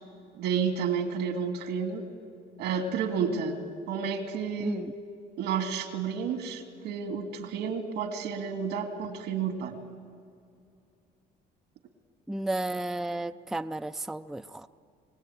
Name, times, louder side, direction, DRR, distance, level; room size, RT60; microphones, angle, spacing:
voice 1, 0.4-2.1 2.6-3.6 3.9-4.8 5.4-9.8, right 6 dB, 85° right, 7 dB, 2.4 m, -31 dB
voice 2, 4.6-4.9 12.3-14.7, right 2 dB, ahead, 9 dB, 0.5 m, -33 dB
24.0 x 18.0 x 9.4 m, 2.5 s
cardioid pair, 110°, 17 cm